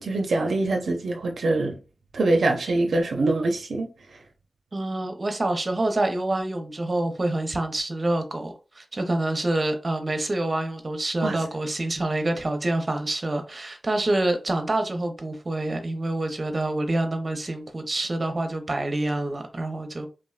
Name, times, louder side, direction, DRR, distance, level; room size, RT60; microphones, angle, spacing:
voice 1, 0.0-1.8 2.1-4.2 11.2-11.4, right 2 dB, 85° right, 0.4 m, -24 dB
voice 2, 4.7-20.1, right 2 dB, 40° right, 0.6 m, -27 dB
3.2 x 2.1 x 2.3 m
cardioid pair, 55°, 0 cm